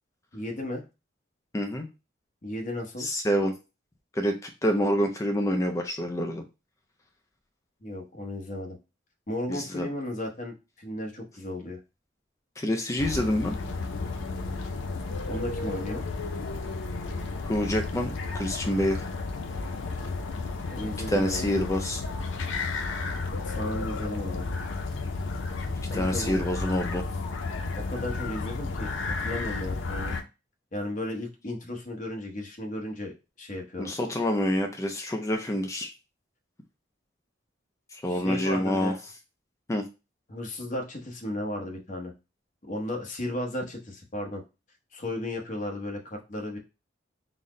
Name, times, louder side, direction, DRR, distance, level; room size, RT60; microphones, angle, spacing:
voice 1, 0.3-0.8 2.4-3.1 7.8-8.8 9.3-11.8 15.3-16.0 20.7-21.5 23.3-24.5 25.9-26.4 27.8-30.1 30.7-33.9 38.1-39.0 40.3-42.1 42.7-44.4 44.9-46.6, left 1 dB, 40° left, 2 dB, 0.9 m, -34 dB
voice 2, 1.5-1.9 3.0-3.5 4.1-6.4 9.5-9.9 12.6-13.6 17.4-19.1 21.1-22.0 25.9-27.0 33.8-35.9 37.9-38.9 39.7-39.8, equal, 15° left, 3 dB, 0.4 m, -27 dB
sound 1, 13.0-30.2, left 3 dB, 90° left, 0.5 m, -32 dB
4.0 x 2.0 x 3.6 m, 0.28 s
head